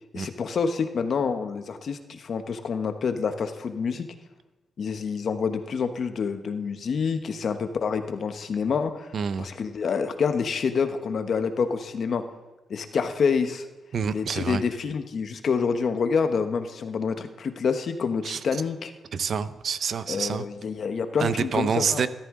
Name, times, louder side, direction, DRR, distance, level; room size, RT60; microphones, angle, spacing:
voice 1, 0.1-4.1 4.8-9.1 9.4-12.2 12.7-13.7 14.1-18.9 20.1-22.1, left 5 dB, 55° left, 8 dB, 1.0 m, -27 dB
voice 2, 9.1-9.5 13.9-14.6 18.2-18.4 19.1-20.5 21.2-22.1, right 6 dB, 55° right, 13 dB, 0.6 m, -27 dB
14.5 x 12.5 x 3.7 m, 1.1 s
cardioid pair, 120°, 0 cm